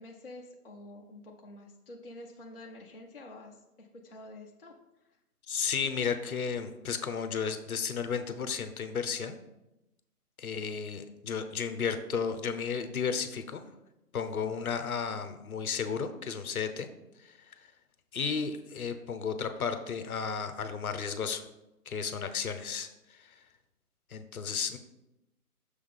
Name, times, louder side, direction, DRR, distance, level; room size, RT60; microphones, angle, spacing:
voice 1, 0.0-4.8, left 2 dB, 40° left, -1 dB, 0.5 m, -48 dB
voice 2, 5.5-9.4 10.4-13.6 14.1-16.9 17.2-17.5 18.1-21.4 21.9-23.4 24.1-24.8, left 6 dB, 65° left, 9 dB, 0.8 m, -33 dB
6.6 x 3.5 x 5.4 m, 0.93 s
hypercardioid pair, 170°, 46 cm